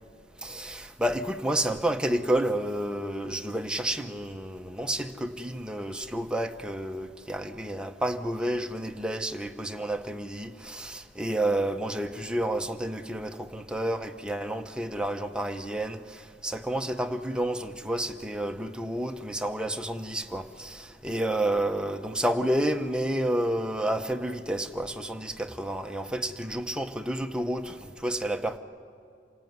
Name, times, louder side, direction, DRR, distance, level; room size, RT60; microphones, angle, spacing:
voice 1, 0.4-16.0 16.4-27.8 28.0-28.6, right 1 dB, 5° right, 6 dB, 0.8 m, -30 dB
27.0 x 17.5 x 9.4 m, 2.4 s
head